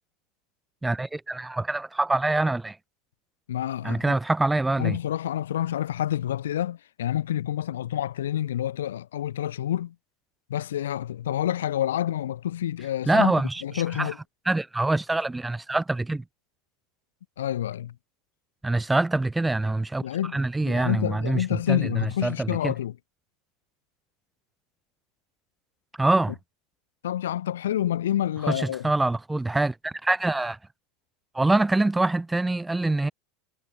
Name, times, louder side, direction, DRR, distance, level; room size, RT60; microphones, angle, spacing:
voice 1, 0.8-2.8 3.8-5.0 13.1-13.6 13.9-14.1 14.4-16.2 18.6-20.0 20.3-22.7 26.0-26.4 28.4-30.6 31.3-33.1, right 2 dB, 10° right, 1.2 m, -25 dB
voice 2, 3.5-4.2 4.8-9.9 10.5-13.3 13.6-14.2 17.4-17.9 20.0-20.4 20.6-22.9 27.0-28.9, left 11 dB, 85° left, 1.3 m, -28 dB
hypercardioid pair, 105°, 0 cm